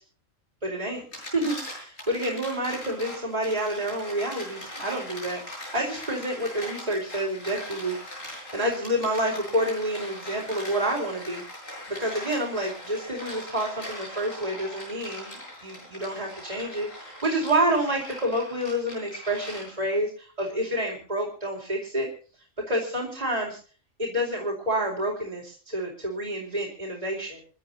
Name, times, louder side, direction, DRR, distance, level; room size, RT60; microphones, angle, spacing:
voice 1, 0.6-5.4 5.7-8.0 8.5-11.4 11.9-22.1 22.7-23.6 24.0-27.4, right 1 dB, 30° right, -2 dB, 4.7 m, -28 dB
sound 1, 0.9-20.0, left 1 dB, 85° left, 8.1 m, -40 dB
29.0 x 12.0 x 2.9 m, 0.40 s
omnidirectional pair, 1.3 m